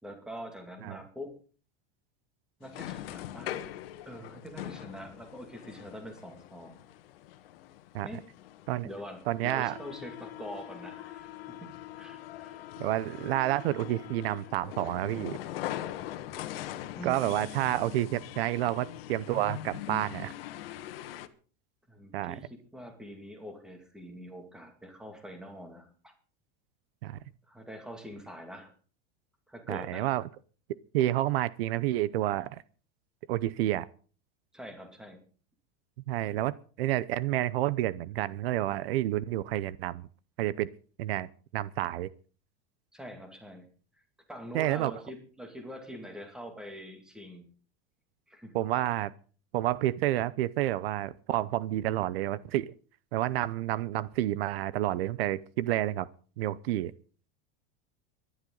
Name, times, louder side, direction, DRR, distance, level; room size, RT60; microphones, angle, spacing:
voice 1, 0.0-1.4 2.6-3.6 4.1-6.8 8.0-8.2 8.8-12.6 17.0-17.4 21.9-26.1 27.5-28.7 29.5-30.1 34.5-35.2 42.9-43.7 44.3-47.5 48.3-48.6, equal, ahead, 4 dB, 2.4 m, -44 dB
sound 1, 2.6-21.3, left 13 dB, 70° left, 1.5 m, -42 dB
voice 2, 9.3-9.8 12.8-15.4 17.0-20.3 22.1-22.4 27.0-27.2 29.7-30.2 30.9-32.6 33.3-33.9 36.1-40.1 40.4-40.7 41.0-42.1 44.5-44.9 48.5-49.1 49.5-52.7 53.1-56.1 56.4-56.9, right 14 dB, 80° right, 18 dB, 0.8 m, -29 dB
24.0 x 11.5 x 3.9 m, 0.40 s
supercardioid pair, 175°, 30 cm